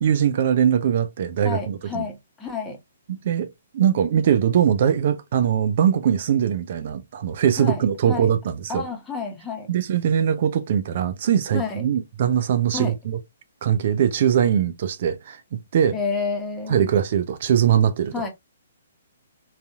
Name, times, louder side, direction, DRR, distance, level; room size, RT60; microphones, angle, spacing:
voice 1, 0.0-2.1 3.1-8.8 9.7-13.2 13.6-16.0 16.7-18.2, right 9 dB, 50° right, 0.5 m, -21 dB
voice 2, 1.4-2.8 7.6-8.3 8.7-9.7 11.5-11.8 12.7-12.9 15.9-16.9 18.1-18.3, left 5 dB, 10° left, 1.0 m, -30 dB
3.9 x 2.7 x 2.3 m
figure-of-eight pair, 125°, 0 cm